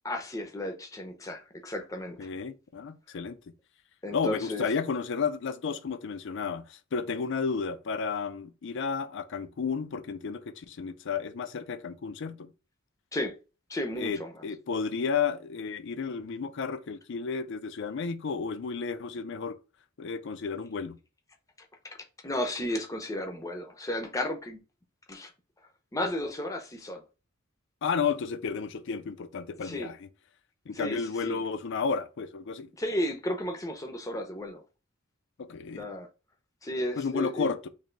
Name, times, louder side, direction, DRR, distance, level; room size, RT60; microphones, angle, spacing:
voice 1, 0.0-2.3 4.0-4.6 13.1-13.4 13.7-14.4 21.8-22.0 22.2-24.6 25.1-25.3 25.9-27.0 29.6-29.9 30.7-31.4 32.8-34.6 35.8-36.1 36.6-37.5, left 1 dB, 15° left, 0.6 m, -33 dB
voice 2, 2.2-3.4 4.1-12.5 14.0-19.6 20.0-21.0 27.8-30.0 30.7-32.7 35.4-35.9 37.0-37.7, left 5 dB, 65° left, 0.4 m, -32 dB
3.2 x 2.6 x 3.8 m
head